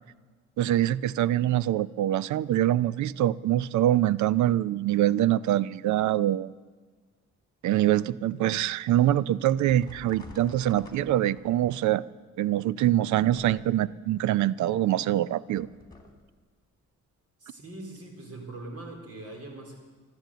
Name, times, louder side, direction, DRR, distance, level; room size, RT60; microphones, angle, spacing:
voice 1, 0.6-6.5 7.6-12.0 12.4-15.7, right 13 dB, 70° right, 20 dB, 0.5 m, -24 dB
sound 1, 9.7-11.8 13.2-14.0 15.5-16.3, left 2 dB, 15° left, 2.5 m, -48 dB
voice 2, 17.4-19.8, right 2 dB, 50° right, 2 dB, 4.2 m, -42 dB
13.0 x 11.5 x 7.9 m, 1.4 s
cardioid pair, 90°, 30 cm